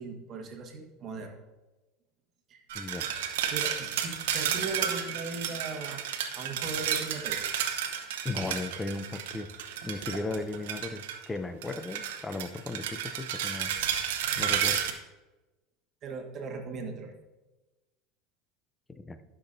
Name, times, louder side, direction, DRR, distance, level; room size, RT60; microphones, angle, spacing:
voice 1, 0.0-1.4 2.5-2.6 3.5-6.1 6.3-7.5 16.0-17.1, right 4 dB, 40° right, 2 dB, 1.4 m, -38 dB
voice 2, 2.7-3.1 8.2-9.5 9.8-13.7 14.4-14.8 18.9-19.2, left 2 dB, 15° left, 10 dB, 0.6 m, -36 dB
sound 1, 2.7-11.3 11.6-14.9, right 9 dB, 85° right, 0.9 m, -32 dB
12.0 x 6.0 x 2.6 m, 1.1 s
supercardioid pair, 120°, 0 cm